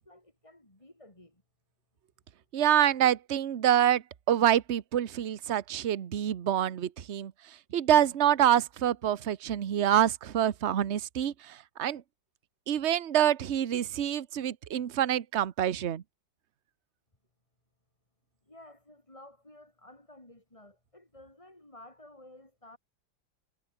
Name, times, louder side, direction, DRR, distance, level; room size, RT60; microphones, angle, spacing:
voice 1, 0.0-1.4 18.4-22.8, left 1 dB, 15° left, 3.9 m, -53 dB
voice 2, 2.5-7.3 7.7-12.0 12.7-16.0, right 10 dB, 45° right, 1.0 m, -26 dB
omnidirectional pair, 2.0 m